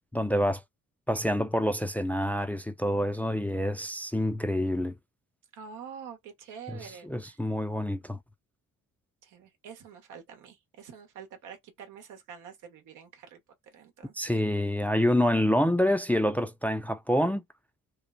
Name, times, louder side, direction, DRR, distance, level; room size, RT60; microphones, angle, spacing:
voice 1, 0.1-0.6 1.1-4.9 6.7-6.8 7.0-8.2 14.2-17.4, equal, 5° left, 0.3 m, -27 dB
voice 2, 5.5-7.4 9.2-13.4 13.7-14.2, right 7 dB, 90° right, 1.0 m, -46 dB
3.1 x 2.1 x 2.3 m
cardioid pair, 90°, 30 cm